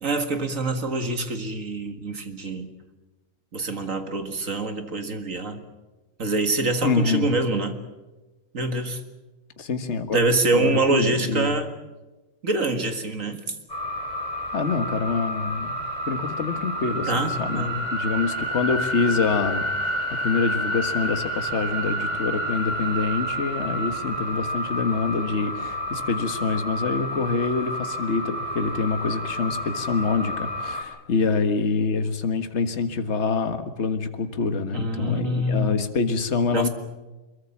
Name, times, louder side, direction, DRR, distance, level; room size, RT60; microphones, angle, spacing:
voice 1, 0.0-2.7 3.5-5.6 6.2-7.8 8.5-9.0 10.1-11.7 12.4-13.5 17.1-17.8 34.7-35.9 36.5-36.7, right 2 dB, 40° right, 7 dB, 2.1 m, -25 dB
voice 2, 6.8-7.3 9.6-10.2 10.5-11.6 14.5-36.7, left 4 dB, 35° left, 8 dB, 1.7 m, -26 dB
sound 1, 13.7-30.8, equal, 20° left, 3.0 m, -29 dB
23.5 x 22.0 x 7.2 m, 1.2 s
omnidirectional pair, 2.3 m